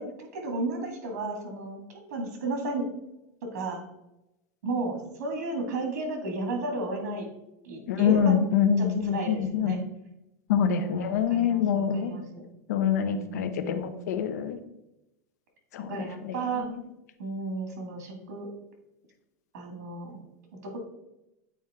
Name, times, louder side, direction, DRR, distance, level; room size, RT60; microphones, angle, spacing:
voice 1, 0.0-2.9 3.5-3.8 4.6-7.3 7.6-8.3 8.8-9.8 10.6-12.4 13.2-14.2 15.9-16.7 17.2-18.5 19.5-20.2 20.6-20.8, right 2 dB, 75° right, 3 dB, 2.1 m, -34 dB
voice 2, 7.9-9.8 10.5-12.1 12.7-14.6 15.7-16.8, left 8 dB, 90° left, 9 dB, 0.8 m, -26 dB
8.3 x 4.4 x 3.6 m, 0.89 s
supercardioid pair, 170°, 9 cm